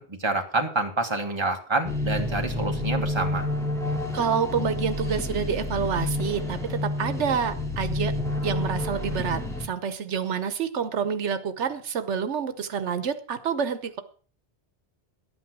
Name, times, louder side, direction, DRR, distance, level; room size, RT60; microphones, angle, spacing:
voice 1, 0.0-3.5, right 2 dB, 25° right, 3 dB, 1.7 m, -27 dB
sound 1, 1.8-9.7, left 2 dB, 5° left, 2.2 m, -29 dB
voice 2, 4.1-8.1 8.4-14.0, right 7 dB, 85° right, 11 dB, 1.2 m, -28 dB
12.0 x 9.1 x 6.0 m, 0.42 s
omnidirectional pair, 1.1 m